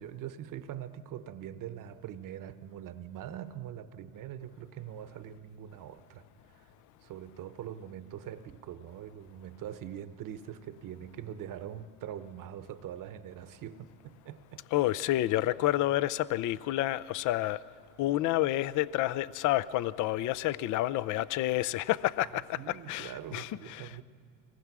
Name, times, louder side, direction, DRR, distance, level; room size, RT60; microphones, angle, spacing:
voice 1, 0.0-6.3 6.6-6.7 7.0-14.6 22.2-24.0, right 10 dB, 50° right, 1.1 m, -43 dB
voice 2, 14.7-17.6 18.0-24.0, left 15 dB, 50° left, 0.6 m, -29 dB
24.0 x 19.0 x 6.1 m
supercardioid pair, 95°, 40 cm